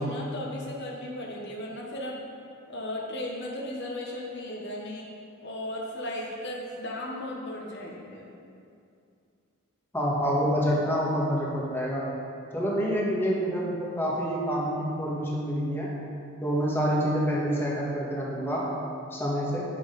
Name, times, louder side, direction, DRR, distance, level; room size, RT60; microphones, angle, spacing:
voice 1, 0.0-2.2 2.7-5.1 5.4-8.3, left 1 dB, 55° left, -2 dB, 1.2 m, -36 dB
voice 2, 9.9-12.0 12.5-15.9 16.4-18.7 19.1-19.6, equal, 10° left, -5 dB, 1.6 m, -27 dB
9.8 x 6.4 x 5.3 m, 2.5 s
head